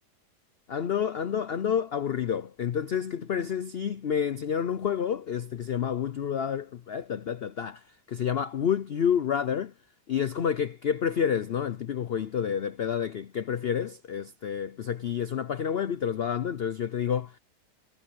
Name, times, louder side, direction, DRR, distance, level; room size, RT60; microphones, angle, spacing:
voice 1, 0.7-9.7 10.1-17.4, left 8 dB, 70° left, 0.5 m, -29 dB
omnidirectional pair, 1.8 m